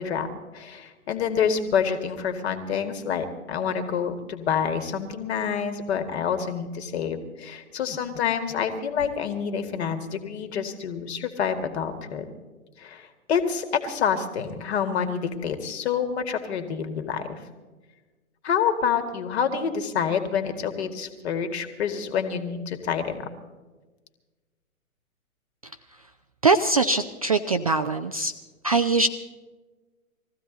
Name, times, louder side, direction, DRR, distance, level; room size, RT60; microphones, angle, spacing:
voice 1, 0.0-12.3 12.8-17.4 18.4-23.3, left 7 dB, 45° left, 8 dB, 2.1 m, -27 dB
voice 2, 26.4-28.3 28.6-29.1, right 3 dB, 30° right, 7 dB, 0.4 m, -22 dB
20.5 x 15.0 x 4.0 m, 1.3 s
figure-of-eight pair, 125°, 43 cm